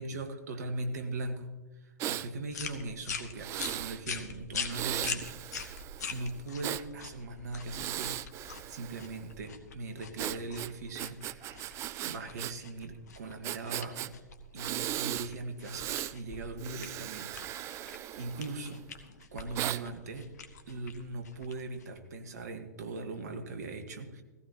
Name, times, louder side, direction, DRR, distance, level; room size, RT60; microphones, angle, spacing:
voice 1, 0.0-1.5 1.8-5.8 6.1-8.2 8.7-14.1 14.5-18.8 19.3-20.3 20.7-24.2, right 2 dB, 70° right, 8 dB, 1.5 m, -40 dB
Breathing, 2.0-2.3 3.4-4.0 4.7-6.8 7.6-9.2 10.2-12.5 12.8-12.9 13.4-14.1 14.6-15.3 15.6-16.1 16.6-18.8 19.5-19.8, right 13 dB, 30° right, 0.4 m, -37 dB
sound 1, 2.5-22.1, left 5 dB, 70° left, 1.3 m, -43 dB
16.0 x 15.5 x 2.9 m, 1.2 s
figure-of-eight pair, 105°, 9 cm